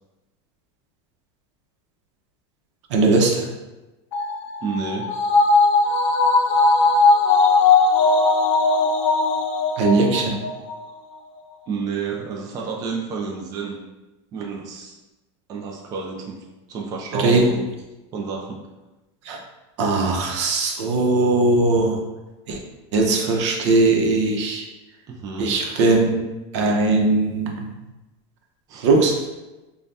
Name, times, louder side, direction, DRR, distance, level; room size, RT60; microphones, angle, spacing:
voice 1, 2.9-3.5 9.8-10.4 17.1-17.4 19.3-19.4 19.8-22.0 22.5-22.6 22.9-24.6 25.4-26.2 26.5-27.7 28.8-29.1, right 3 dB, 75° right, 2 dB, 0.7 m, -19 dB
sound 1, 4.1-10.8 11.1-11.2, left 3 dB, 75° left, 0.5 m, -18 dB
voice 2, 4.6-5.1 11.7-13.8 14.3-15.0 15.5-16.4 16.7-17.6 18.1-18.6 25.1-25.9 28.7-28.9, right 5 dB, 25° right, -1 dB, 0.4 m, -30 dB
5.2 x 2.2 x 2.7 m, 1.1 s
supercardioid pair, 160°, 15 cm